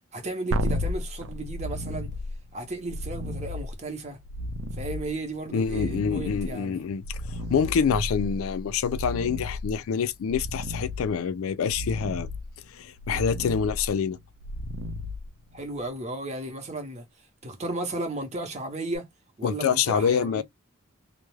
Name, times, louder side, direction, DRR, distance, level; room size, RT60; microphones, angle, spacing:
voice 1, 0.1-2.1 2.5-4.2 4.7-6.8 15.5-17.1 17.4-19.1 19.4-20.4, right 2 dB, 35° right, 0.7 m, -34 dB
sound 1, 0.5-15.8 18.9-19.0, left 1 dB, 85° right, 0.3 m, -34 dB
voice 2, 5.5-12.3 12.7-14.2 19.4-20.4, left 6 dB, 85° left, 0.4 m, -26 dB
2.3 x 2.0 x 3.1 m
head